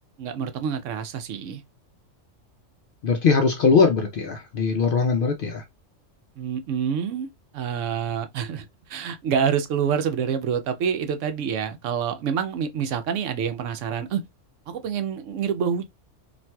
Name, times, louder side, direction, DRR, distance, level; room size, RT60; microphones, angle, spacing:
voice 1, 0.2-1.6 6.4-7.3 7.5-8.6 8.9-14.2 14.7-15.8, right 7 dB, 75° right, 0.9 m, -27 dB
voice 2, 3.0-5.6, left 5 dB, 60° left, 0.6 m, -21 dB
4.2 x 2.5 x 2.2 m
omnidirectional pair, 1.3 m